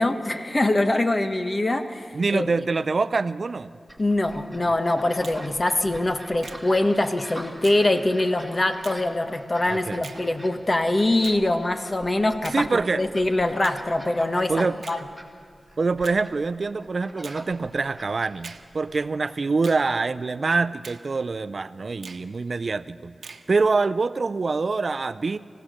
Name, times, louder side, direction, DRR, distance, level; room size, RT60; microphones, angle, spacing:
voice 1, 0.0-2.7 4.0-15.0, left 2 dB, 40° left, 7 dB, 1.3 m, -23 dB
voice 2, 2.1-3.7 4.6-4.7 9.7-10.1 12.5-13.0 14.5-14.8 15.8-23.1 23.5-25.4, right 4 dB, 60° right, 14 dB, 0.5 m, -25 dB
sound 1, 3.9-19.1, equal, 5° left, 2.6 m, -45 dB
Finger snapping, 5.2-5.5 6.4-6.6 7.6-7.9 8.8-9.0 10.0-10.2 11.2-11.4 12.4-12.7 13.6-13.8 14.8-15.0 16.0-16.2 17.2-17.4 18.4-18.7 19.6-19.8 20.8-21.0 22.0-22.3 23.2-23.5, right 4 dB, 80° right, 1.0 m, -42 dB
25.5 x 16.0 x 6.5 m, 2.2 s
cardioid pair, 55°, 0 cm